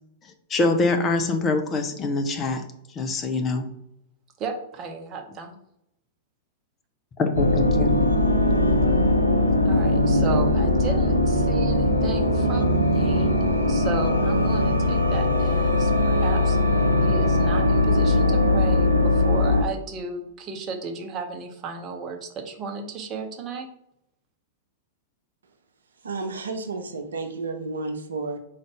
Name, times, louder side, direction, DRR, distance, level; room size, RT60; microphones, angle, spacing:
voice 1, 0.5-2.6 2.9-3.7 7.2-7.9, left 3 dB, 25° left, 5 dB, 0.6 m, -24 dB
voice 2, 4.4-5.6 7.9-8.1 9.6-13.3 13.7-16.6 17.0-23.7, right 4 dB, 30° right, 4 dB, 0.8 m, -34 dB
sound 1, 7.3-19.6, left 1 dB, 90° left, 0.5 m, -20 dB
voice 3, 26.0-28.4, right 3 dB, 70° right, 5 dB, 0.6 m, -31 dB
3.9 x 2.5 x 4.7 m, 0.78 s
figure-of-eight pair, 95°, 0 cm